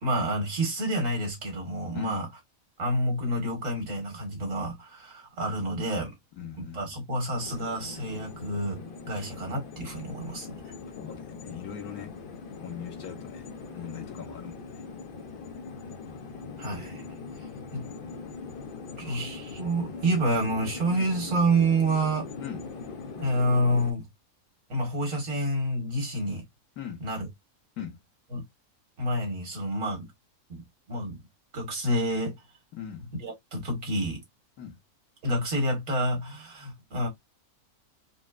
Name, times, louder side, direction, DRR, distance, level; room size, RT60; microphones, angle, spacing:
voice 1, 0.0-2.3 2.8-6.1 6.6-8.8 9.1-10.6 16.6-17.0 17.4-17.8 19.0-22.3 23.2-24.1 24.7-26.4 27.0-27.3 28.3-28.4 29.0-30.1 30.5-30.6 30.9-31.2 31.5-32.4 33.2-34.2 35.2-37.1, right 1 dB, 60° right, 1.9 m, -28 dB
voice 2, 6.4-7.0 9.1-9.3 11.0-12.1 12.6-13.5 13.7-14.8 20.9-21.1 22.4-22.6 26.8-27.0 27.8-28.0 32.7-33.1 34.6-34.8, left 8 dB, 80° left, 1.4 m, -40 dB
sound 1, 7.3-23.9, left 4 dB, 55° left, 0.6 m, -41 dB
4.1 x 2.2 x 2.4 m
omnidirectional pair, 1.5 m